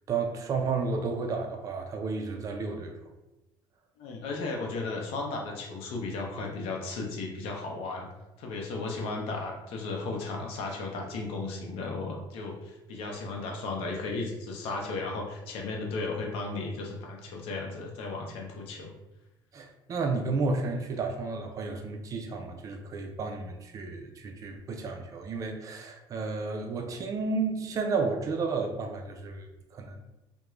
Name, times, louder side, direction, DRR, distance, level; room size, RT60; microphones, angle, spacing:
voice 1, 0.1-2.9 19.5-30.0, right 4 dB, 35° right, 4 dB, 0.4 m, -32 dB
voice 2, 4.0-8.1 8.4-18.9, left 3 dB, 75° left, 0 dB, 0.6 m, -35 dB
2.4 x 2.1 x 3.0 m, 0.98 s
cardioid pair, 140°, 10 cm